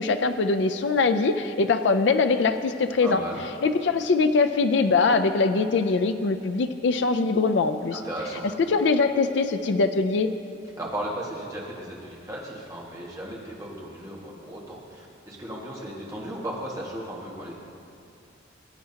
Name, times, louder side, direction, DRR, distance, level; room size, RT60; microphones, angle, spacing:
voice 1, 0.0-3.2 3.6-8.0 8.7-10.3, left 4 dB, 70° left, 9 dB, 0.4 m, -22 dB
voice 2, 3.0-3.4 7.9-8.4 10.8-17.5, right 1 dB, 20° right, -4 dB, 1.7 m, -36 dB
19.0 x 8.7 x 2.9 m, 2.7 s
head